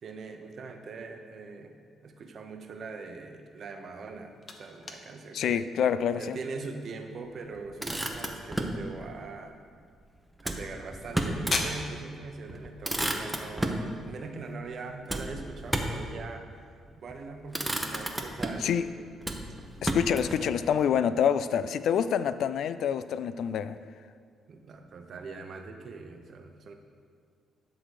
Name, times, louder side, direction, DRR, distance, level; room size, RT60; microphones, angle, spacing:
voice 1, 0.0-1.8 2.0-5.7 6.2-9.6 10.4-19.0 19.9-20.7 24.5-26.7, right 4 dB, 55° right, 6 dB, 0.9 m, -42 dB
sound 1, 3.8-14.6, left 3 dB, 40° left, 1.0 m, -42 dB
voice 2, 5.3-6.4 18.6-18.8 19.8-23.8, left 8 dB, 70° left, 13 dB, 0.3 m, -27 dB
Motor vehicle (road), 7.6-8.8 10.4-11.6 12.0-12.1 12.5-13.9 15.1-16.1 16.9-17.2 17.5-18.7 19.2-20.4, right 1 dB, 10° right, 0.9 m, -32 dB
11.0 x 3.9 x 6.5 m, 2.1 s
cardioid pair, 90°, 0 cm